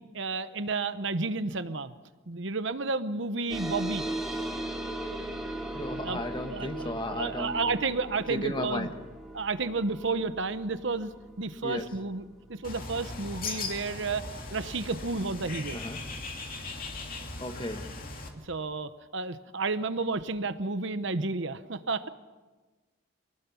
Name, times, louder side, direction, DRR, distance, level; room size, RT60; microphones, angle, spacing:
voice 1, 0.1-1.9 2.3-4.0 6.0-6.2 6.5-8.9 9.3-11.1 11.4-12.2 12.5-14.2 14.5-15.8 18.4-22.1, right 3 dB, 60° right, 12 dB, 0.9 m, -31 dB
sound 1, 3.5-14.4, right 1 dB, ahead, 2.3 m, -39 dB
voice 2, 5.7-7.6 8.3-8.9 11.6-11.9 15.7-16.0 17.4-17.9, left 1 dB, 20° left, 6 dB, 1.3 m, -34 dB
Bird, 12.6-18.3, left 3 dB, 40° left, 2.6 m, -39 dB
24.5 x 18.5 x 7.1 m, 1.2 s
head